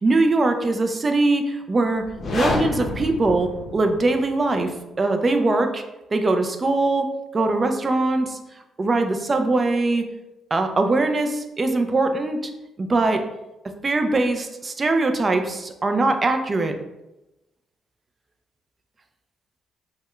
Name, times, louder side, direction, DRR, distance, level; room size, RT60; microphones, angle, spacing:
voice 1, 0.0-2.0 2.3-5.8 6.1-8.4 8.8-10.0 10.5-12.4 12.8-13.2 13.8-16.7, right 2 dB, 30° right, 6 dB, 0.4 m, -21 dB
sound 1, 2.0-4.2, left 2 dB, 45° left, 0.6 m, -28 dB
4.6 x 2.1 x 2.3 m, 0.95 s
cardioid pair, 90°, 0 cm